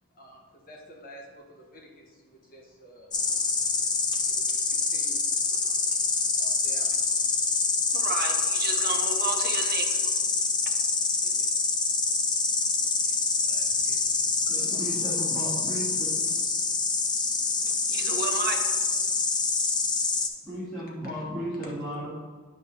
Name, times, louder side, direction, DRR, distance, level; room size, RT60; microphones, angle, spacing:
voice 1, 0.1-3.4 4.2-5.2 6.3-7.1 11.2-11.5 13.0-15.1 15.7-16.0 16.3-16.4 21.6-21.7, equal, 40° left, -1 dB, 1.3 m, -50 dB
Insect, 3.1-20.3, left 4 dB, 20° left, 0.5 m, -26 dB
voice 2, 7.9-10.0 17.9-18.6, right 5 dB, 45° right, 3 dB, 0.8 m, -32 dB
voice 3, 14.5-16.1 20.4-22.2, equal, ahead, -15 dB, 2.2 m, -35 dB
10.0 x 5.2 x 2.7 m, 1.5 s
head